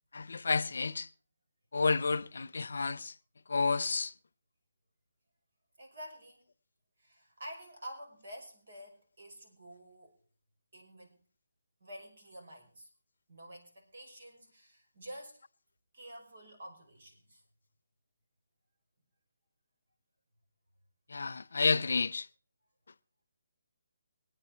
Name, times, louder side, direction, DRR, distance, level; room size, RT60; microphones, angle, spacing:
voice 1, 0.1-1.1 1.7-3.1 3.5-4.1 21.1-22.3, left 4 dB, 80° left, 0.6 m, -30 dB
voice 2, 5.8-6.5 7.0-10.2 10.7-11.2 11.8-12.9 13.3-15.4 15.9-17.4, right 1 dB, 75° right, 5.6 m, -49 dB
23.0 x 9.0 x 4.4 m
hypercardioid pair, 165°, 0 cm